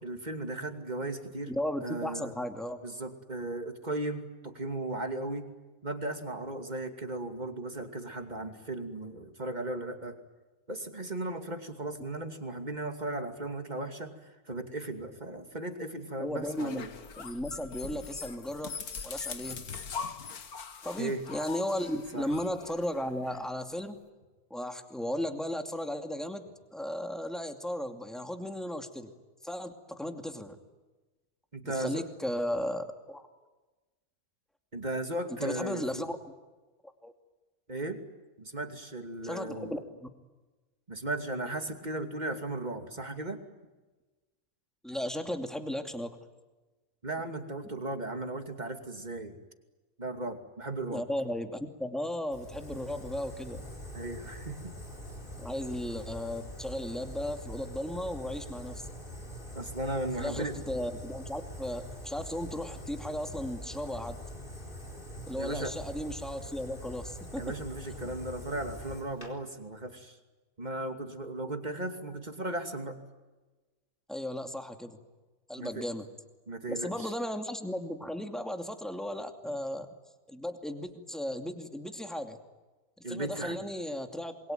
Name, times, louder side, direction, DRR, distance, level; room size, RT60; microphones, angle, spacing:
voice 1, 0.0-1.5 1.8-2.3 2.8-5.5 5.8-10.2 10.7-16.9 21.0-21.2 22.1-22.3 31.5-32.1 34.7-36.1 37.7-38.0 38.4-39.9 40.9-43.4 47.0-49.3 50.0-51.0 53.9-54.7 59.5-60.6 65.4-65.7 67.4-70.2 70.6-73.0 75.6-75.8 76.5-77.1 83.0-83.6, right 2 dB, 30° right, 6 dB, 2.7 m, -36 dB
voice 2, 1.5-2.8 16.2-16.8 17.2-18.7 19.0-19.6 20.8-24.0 24.5-26.5 26.7-29.1 29.4-30.6 31.7-33.2 35.3-36.3 37.0-37.1 39.2-40.1 44.8-46.2 50.9-53.6 55.4-58.9 60.2-64.2 65.3-67.6 74.1-75.0 75.5-76.1 76.7-79.9 80.3-82.4 83.1-84.5, left 1 dB, ahead, 6 dB, 2.4 m, -35 dB
sound 1, 16.4-23.4, left 6 dB, 80° left, 2.0 m, -42 dB
Fire, 52.3-69.3, equal, 35° left, 4.4 m, -44 dB
27.5 x 23.0 x 9.3 m, 1.2 s
omnidirectional pair, 1.6 m